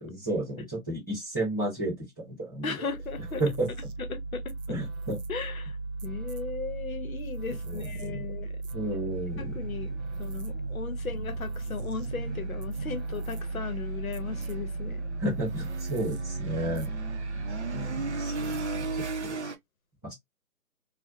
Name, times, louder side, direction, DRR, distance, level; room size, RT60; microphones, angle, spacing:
voice 1, 0.0-2.7 3.4-3.7 4.7-5.2 7.5-8.3 8.7-9.5 15.2-16.9 17.7-19.4 20.0-20.1, right 1 dB, 15° left, 0.9 m, -33 dB
voice 2, 2.6-3.4 4.0-4.5 5.3-5.8 6.0-8.9 9.4-15.1, left 5 dB, 70° left, 0.8 m, -37 dB
sound 1, 2.9-19.5, right 3 dB, 90° right, 0.7 m, -36 dB
sound 2, 9.1-19.6, right 4 dB, 55° right, 0.5 m, -39 dB
2.5 x 2.1 x 2.5 m
hypercardioid pair, 175°, 43 cm